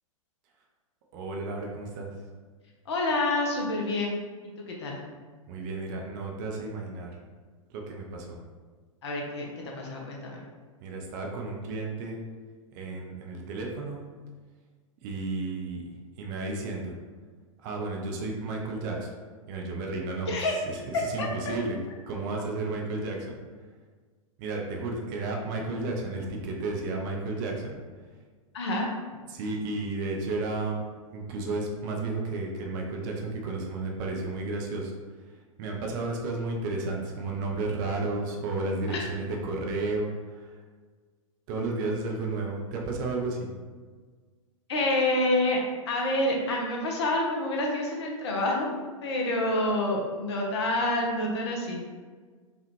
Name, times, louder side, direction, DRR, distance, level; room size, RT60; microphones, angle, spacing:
voice 1, 1.1-2.1 5.5-7.1 7.7-8.4 10.8-12.2 12.7-14.0 15.0-15.8 16.2-16.9 17.6-19.1 19.5-20.3 20.9-21.8 22.1-23.4 24.4-27.8 29.3-30.8 31.1-34.9 35.6-40.5 41.5-43.5, right 3 dB, 35° right, 0 dB, 0.6 m, -32 dB
voice 2, 2.9-4.2 4.7-5.0 9.0-10.4 20.3-20.5 21.2-21.3 28.5-28.9 38.9-39.1 44.7-48.7 49.0-51.8, left 1 dB, 50° left, 0 dB, 0.9 m, -27 dB
5.0 x 2.5 x 3.1 m, 1.5 s
figure-of-eight pair, 105°, 18 cm